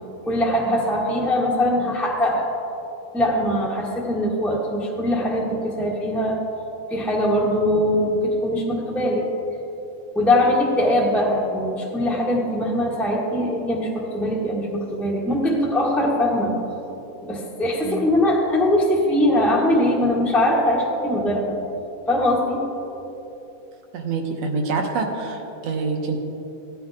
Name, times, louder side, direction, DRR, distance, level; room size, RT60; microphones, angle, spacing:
voice 1, 0.2-2.5 3.1-6.4 6.9-9.3 10.1-16.5 17.2-21.6 22.1-22.6, left 1 dB, ahead, -5 dB, 0.7 m, -21 dB
voice 2, 23.9-26.2, right 4 dB, 70° right, 3 dB, 2.0 m, -26 dB
16.0 x 10.5 x 3.6 m, 3.0 s
omnidirectional pair, 3.4 m